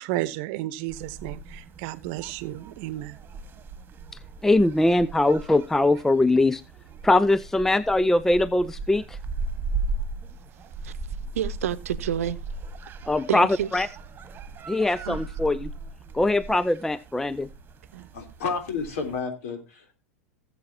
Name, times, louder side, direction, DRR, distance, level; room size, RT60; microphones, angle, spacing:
voice 1, 0.0-3.2, right 16 dB, 55° right, 0.9 m, -32 dB
sound 1, 0.9-19.2, right 3 dB, 25° right, 1.6 m, -37 dB
voice 2, 4.4-6.6 7.0-9.2 13.1-13.5 13.7-13.9 14.7-15.7 16.1-17.5, left 2 dB, 5° left, 0.4 m, -21 dB
voice 3, 11.3-12.4 13.3-13.9 15.1-15.2 17.9-18.1, right 10 dB, 75° right, 0.8 m, -29 dB
voice 4, 18.1-19.9, left 5 dB, 70° left, 3.6 m, -31 dB
17.5 x 7.7 x 2.8 m
hypercardioid pair, 100°, 8 cm